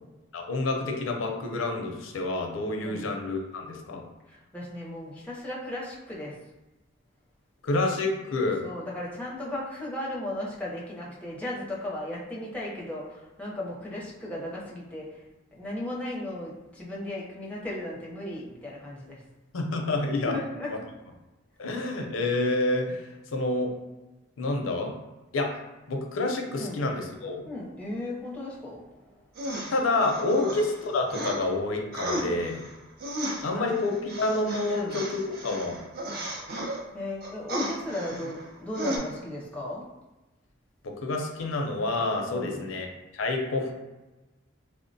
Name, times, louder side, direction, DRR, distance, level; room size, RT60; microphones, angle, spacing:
voice 1, 0.3-4.0 7.6-8.6 19.5-20.4 20.7-20.8 21.6-23.7 24.4-24.9 25.3-25.5 25.9-27.4 29.7-32.6 33.4-35.8 40.8-43.7, left 2 dB, 90° left, 3 dB, 0.5 m, -28 dB
voice 2, 4.3-6.4 8.6-15.2 15.5-19.2 20.3-20.8 26.6-26.8 27.4-28.9 29.1-29.2 30.3-30.5 32.2-32.5 33.5-33.8 34.7-35.0 36.2-36.4 36.9-39.9 42.3-42.7, left 1 dB, 5° left, -5 dB, 0.5 m, -36 dB
sound 1, 29.3-31.4 31.9-36.8 37.2-38.5 38.7-39.0, right 1 dB, 50° right, 0.5 m, -34 dB
3.3 x 2.1 x 2.6 m, 1.1 s
head